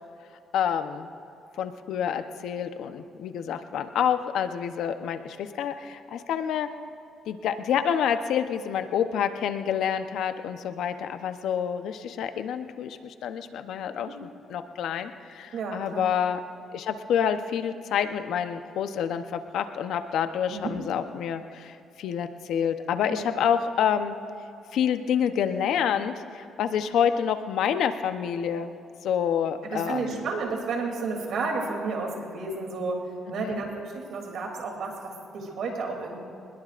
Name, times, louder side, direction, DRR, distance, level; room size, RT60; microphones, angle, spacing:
voice 1, 0.5-1.1 1.6-6.7 7.3-16.4 16.7-24.1 24.7-28.7 29.0-30.3 33.4-33.6, left 8 dB, 80° left, 8 dB, 0.9 m, -28 dB
voice 2, 15.5-16.0 20.5-20.7 23.1-23.3 29.6-33.0 33.3-36.2, right 4 dB, 70° right, 1 dB, 2.9 m, -32 dB
24.0 x 21.0 x 2.6 m, 2.6 s
cardioid pair, 90°, 0 cm